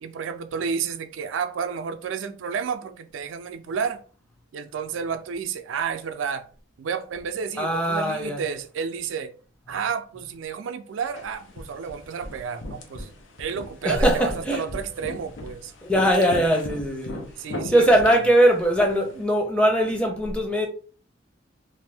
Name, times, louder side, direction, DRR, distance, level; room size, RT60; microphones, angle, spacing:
voice 1, 0.0-4.0 4.5-6.5 6.8-9.3 9.7-13.1 13.4-15.7 17.4-18.2, right 6 dB, 80° right, 0.4 m, -31 dB
voice 2, 7.6-8.4 13.8-14.6 15.8-17.3 17.7-20.7, right 1 dB, 5° left, 0.5 m, -21 dB
sound 1, 11.0-19.2, left 1 dB, 85° left, 0.7 m, -39 dB
2.6 x 2.5 x 3.3 m
head